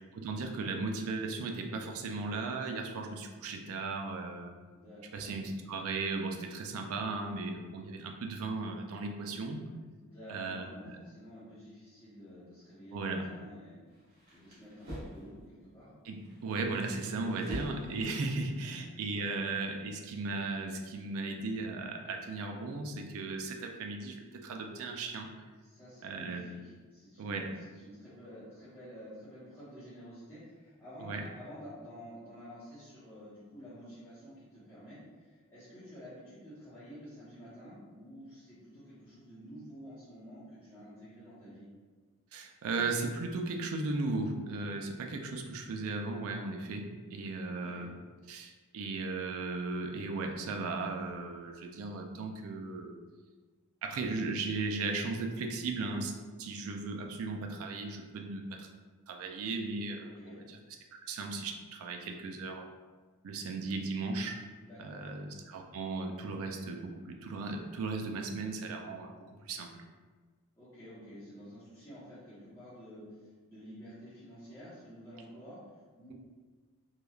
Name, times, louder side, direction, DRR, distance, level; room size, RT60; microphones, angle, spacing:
voice 1, 0.1-4.5 5.1-9.7 10.3-11.0 12.9-13.2 16.0-25.3 26.0-26.4 27.2-27.5 31.0-31.2 42.3-47.9 48.3-52.9 53.8-56.1 56.4-58.7 59.1-60.1 60.5-60.6 61.1-62.7 63.2-64.4 64.8-69.1 69.5-69.7, right 3 dB, 65° right, 3 dB, 0.4 m, -36 dB
voice 2, 4.7-5.4 10.0-13.8 14.3-15.9 18.6-19.0 25.6-41.7 47.4-47.8 60.0-60.4 64.6-65.1 70.6-75.6 75.9-76.1, equal, 15° left, -16 dB, 0.9 m, -50 dB
sound 1, 13.9-15.3 16.1-18.2, equal, 45° right, 0.9 m, -46 dB
3.1 x 2.3 x 2.3 m, 1.4 s
head